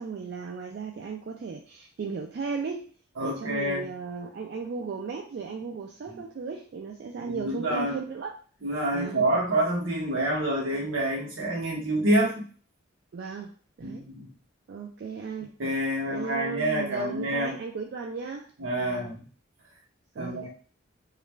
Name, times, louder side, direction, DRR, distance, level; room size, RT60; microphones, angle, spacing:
voice 1, 0.0-2.9 3.2-8.4 8.9-9.3 13.1-13.5 13.8-14.1 14.7-15.5 16.1-18.5 18.8-19.1 20.1-20.5, right 5 dB, 55° right, 1 dB, 0.3 m, -36 dB
voice 2, 3.2-3.8 6.1-6.2 7.3-8.0 8.6-12.5 13.8-14.3 15.6-17.6 18.6-19.2 20.2-20.5, right 1 dB, 75° right, -2 dB, 0.9 m, -27 dB
2.4 x 2.2 x 3.1 m, 0.41 s
head